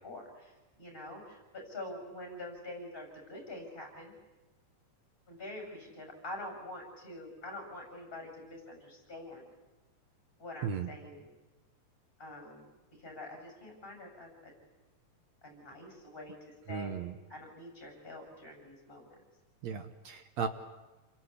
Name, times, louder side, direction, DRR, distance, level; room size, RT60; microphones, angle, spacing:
voice 1, 0.0-4.1 5.3-9.5 10.4-11.3 12.2-12.7 13.0-14.5 15.4-16.3 16.7-17.0 17.3-19.2, left 1 dB, 15° left, 1 dB, 7.4 m, -46 dB
voice 2, 16.7-17.1 19.6-20.5, right 7 dB, 70° right, 7 dB, 2.3 m, -35 dB
28.5 x 23.0 x 8.4 m, 1.1 s
omnidirectional pair, 3.4 m